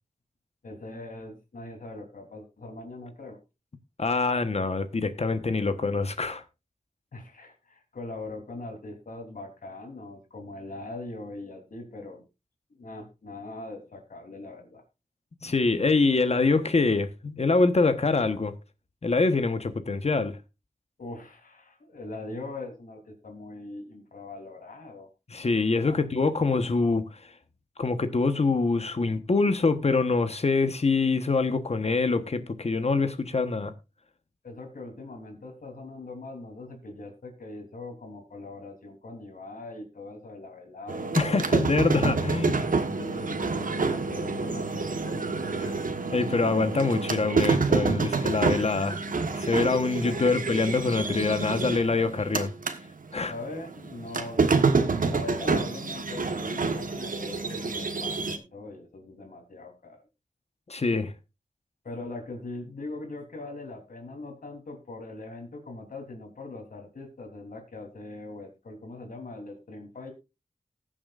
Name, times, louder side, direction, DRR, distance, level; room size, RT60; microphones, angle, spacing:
voice 1, 0.6-3.4 7.1-12.2 12.7-14.8 21.0-25.1 25.8-26.0 34.4-41.2 42.9-45.7 49.9-50.4 53.3-60.0 61.8-70.1, left 2 dB, 85° left, 3.4 m, -41 dB
voice 2, 4.0-6.4 15.4-18.5 19.0-20.3 25.3-27.2 27.8-33.7 41.1-42.7 45.6-45.7 46.1-49.0 49.3-52.5 53.1-53.3 60.7-61.1, left 3 dB, 50° left, 1.2 m, -25 dB
sound 1, 40.9-52.8 53.1-58.4, right 4 dB, 80° right, 1.3 m, -28 dB
19.5 x 7.5 x 2.5 m
wide cardioid pair, 70°, 14 cm